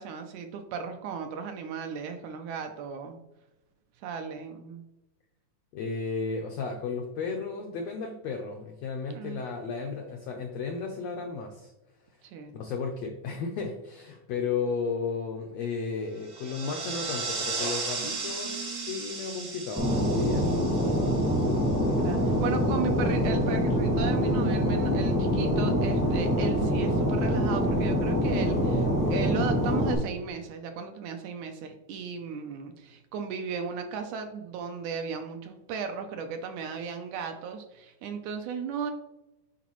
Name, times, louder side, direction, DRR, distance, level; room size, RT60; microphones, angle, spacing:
voice 1, 0.0-3.2 4.0-4.8 9.1-9.4 12.2-12.6 18.0-19.1 21.9-38.9, right 6 dB, 80° right, 6 dB, 1.8 m, -36 dB
voice 2, 5.7-11.7 12.5-20.7, left 5 dB, 80° left, 3 dB, 1.4 m, -34 dB
sound 1, 16.2-22.0, right 4 dB, 60° right, 1.0 m, -36 dB
Fixed-wing aircraft airplane, 19.8-29.9, equal, 20° right, 0.5 m, -25 dB
9.8 x 4.0 x 3.0 m, 0.98 s
omnidirectional pair, 3.7 m